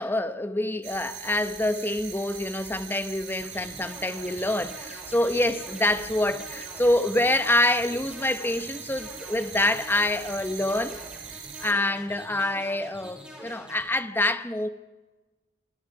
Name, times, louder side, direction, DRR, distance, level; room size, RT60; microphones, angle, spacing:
voice 1, 0.0-11.0 11.6-14.7, left 1 dB, 10° left, 1.1 m, -26 dB
sound 1, 0.8-11.7, right 8 dB, 85° right, 3.5 m, -42 dB
sound 2, 3.4-13.8, equal, 5° right, 5.7 m, -45 dB
26.5 x 26.0 x 4.9 m
head